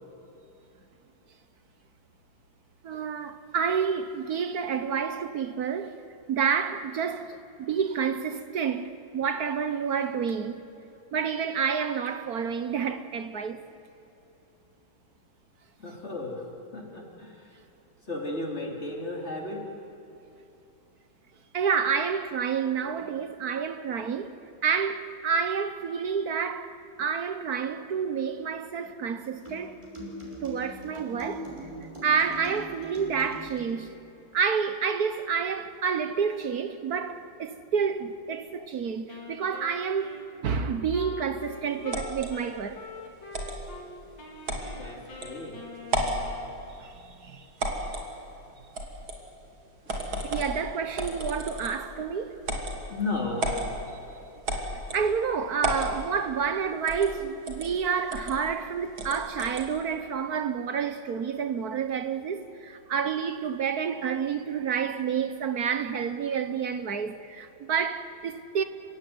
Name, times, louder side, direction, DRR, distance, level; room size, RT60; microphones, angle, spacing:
voice 1, 2.8-6.0 6.3-10.5 11.1-13.6 21.5-24.3 24.6-29.8 30.4-31.5 31.8-33.9 34.3-42.8 46.8-47.5 50.3-52.4 54.2-54.3 54.9-68.6, right 6 dB, 55° right, 1.3 m, -29 dB
voice 2, 15.8-16.5 16.7-17.5 18.0-19.7 44.8-45.6 52.9-53.6, left 2 dB, 35° left, 3.5 m, -34 dB
sound 1, 29.4-33.7, equal, 15° right, 5.5 m, -41 dB
Wind instrument woodwind instrument, 39.1-43.9 44.2-46.8, left 3 dB, 65° left, 3.5 m, -44 dB
sound 2, 41.9-42.3 43.3-43.6 44.5-44.7 45.2-45.3 45.8-46.2 47.6-48.1 48.7-49.2 49.9-50.5 51.0-51.8 52.4-52.8 53.4-53.7 54.5-55.0 55.6-55.9 56.9-57.1 57.5-57.7 58.1-58.3 59.0-59.7, right 1 dB, 80° right, 3.6 m, -31 dB
29.5 x 16.5 x 9.6 m
omnidirectional pair, 2.2 m